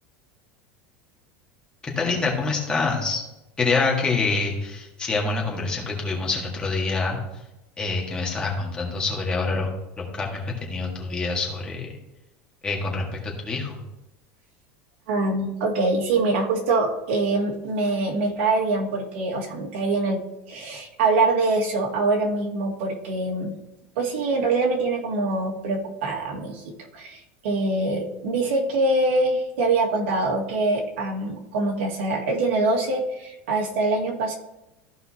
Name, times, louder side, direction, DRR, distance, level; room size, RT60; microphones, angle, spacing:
voice 1, 1.8-3.2 3.6-7.2 7.8-9.7 10.0-11.9 12.6-13.8, left 3 dB, 15° left, -2 dB, 1.8 m, -26 dB
voice 2, 15.1-23.5 24.0-26.6 26.9-34.3, right 2 dB, 85° right, 0 dB, 2.0 m, -24 dB
14.0 x 5.3 x 2.9 m, 0.94 s
supercardioid pair, 155°, 6 cm